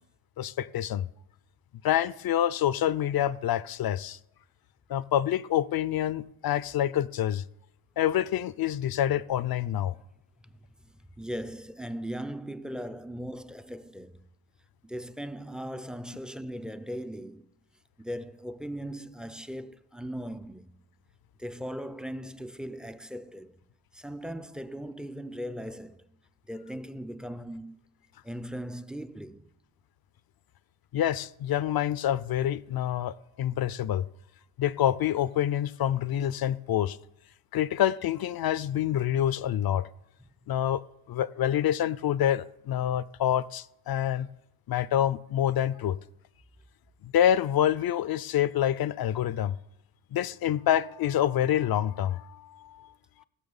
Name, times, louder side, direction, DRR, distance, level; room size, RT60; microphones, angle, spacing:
voice 1, 0.4-1.1 1.8-4.2 4.9-7.4 8.0-9.9 30.9-34.0 34.6-37.0 37.5-39.9 40.5-40.8 41.1-44.3 44.7-46.0 47.0-49.6 50.1-52.9, left 11 dB, 45° left, 0.6 m, -27 dB
voice 2, 10.4-14.2 14.8-17.5 18.0-20.7 21.4-23.6 23.9-26.1 26.5-27.8 28.2-29.5 40.2-40.3, equal, ahead, 0.5 m, -39 dB
17.0 x 6.1 x 7.2 m
cardioid pair, 90°, 50 cm